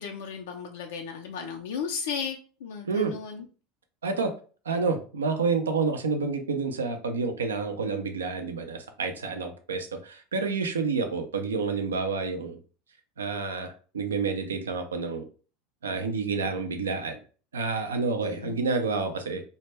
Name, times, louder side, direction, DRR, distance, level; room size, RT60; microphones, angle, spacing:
voice 1, 0.0-3.4 18.2-18.6, left 6 dB, 75° left, 3 dB, 0.3 m, -35 dB
voice 2, 4.0-4.3 4.7-12.6 13.2-15.2 15.8-17.2 17.5-19.4, right 4 dB, 85° right, 5 dB, 0.4 m, -29 dB
2.1 x 2.0 x 3.2 m, 0.38 s
hypercardioid pair, 85°, 0 cm